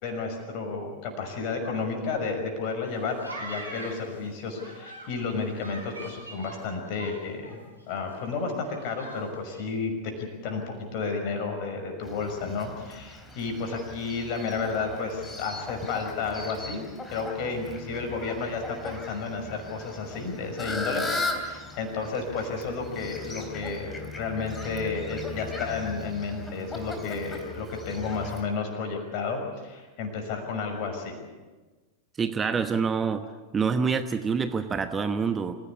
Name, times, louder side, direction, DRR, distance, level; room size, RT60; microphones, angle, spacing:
voice 1, 0.0-7.6 7.9-16.9 17.1-31.2, left 4 dB, 45° left, 4 dB, 6.0 m, -32 dB
sound 1, 2.9-5.1 5.6-7.5 7.8-7.9 8.1-9.2 9.5-9.7, right 2 dB, 85° right, 5.3 m, -42 dB
Fowl, 12.0-28.4, left 2 dB, 15° left, 3.6 m, -38 dB
voice 2, 32.2-33.2 33.5-35.6, right 5 dB, 20° right, 9 dB, 1.1 m, -26 dB
27.0 x 16.5 x 8.5 m, 1.3 s
figure-of-eight pair, 90°, 0 cm